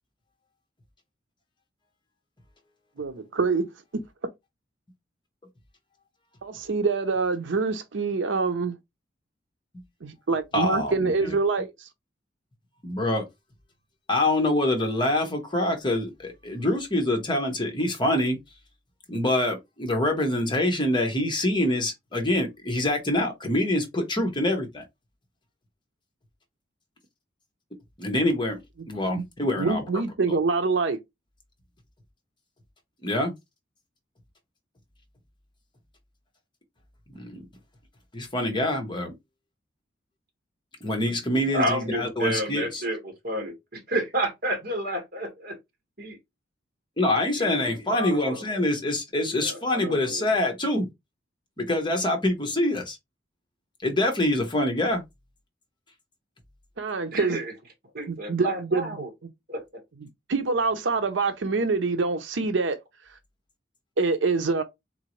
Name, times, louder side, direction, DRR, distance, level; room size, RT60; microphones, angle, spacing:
voice 1, 3.0-4.0 6.4-8.8 10.0-11.9 29.1-29.2 29.6-31.0 56.8-57.4 58.1-59.0 60.0-62.8 64.0-64.6, right 4 dB, 85° right, 0.6 m, -26 dB
voice 2, 10.5-11.3 12.8-13.2 14.1-18.4 19.1-24.8 28.0-28.6 28.9-29.8 30.3-30.4 33.0-33.3 37.1-37.5 38.1-39.1 40.8-42.8 47.0-50.9 51.6-53.0 53.8-55.0, left 1 dB, 25° left, 1.1 m, -25 dB
voice 3, 41.5-45.6 46.0-46.2 47.4-48.4 49.3-50.3 57.1-57.5 57.9-59.1 59.5-59.6, right 1 dB, 50° right, 1.8 m, -30 dB
3.9 x 3.7 x 3.1 m
head